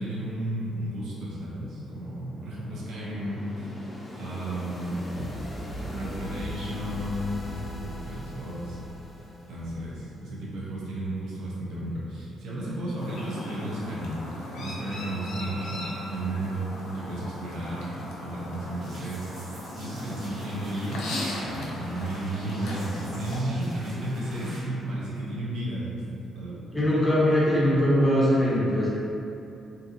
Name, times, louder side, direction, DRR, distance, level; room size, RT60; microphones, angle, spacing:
voice 1, 0.0-3.8 4.2-5.3 5.8-7.4 7.8-8.8 9.5-14.2 14.5-15.8 16.1-26.1 26.3-26.6, right 1 dB, 75° right, -7 dB, 0.6 m, -33 dB
sound 1, 1.7-10.3, left 1 dB, 20° left, 0.5 m, -39 dB
Chirp tweet, 13.0-23.4, left 1 dB, 85° left, 0.5 m, -38 dB
sound 2, 18.8-24.6, right 1 dB, 55° right, 0.9 m, -47 dB
voice 2, 26.7-28.9, equal, 5° right, -9 dB, 0.9 m, -21 dB
2.6 x 2.4 x 2.7 m, 2.8 s
cardioid pair, 90°, 0 cm